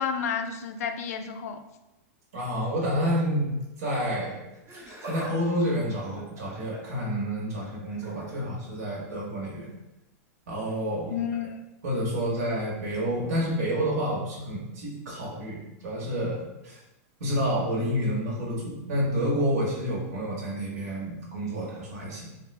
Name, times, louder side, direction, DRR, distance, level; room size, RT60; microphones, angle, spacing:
voice 1, 0.0-1.6 11.1-11.6, left 7 dB, 70° left, 7 dB, 0.4 m, -31 dB
voice 2, 2.3-3.5 3.8-4.4 4.7-9.7 10.5-11.1 11.8-16.4 16.6-16.8 17.2-22.3, equal, 70° right, -5 dB, 1.2 m, -29 dB
Laughter, 4.5-5.3 5.6-7.0 7.9-8.3 9.6-9.8 10.7-10.8, right 1 dB, 30° right, 0.8 m, -42 dB
3.2 x 2.3 x 3.1 m, 0.95 s
supercardioid pair, 175°, 9 cm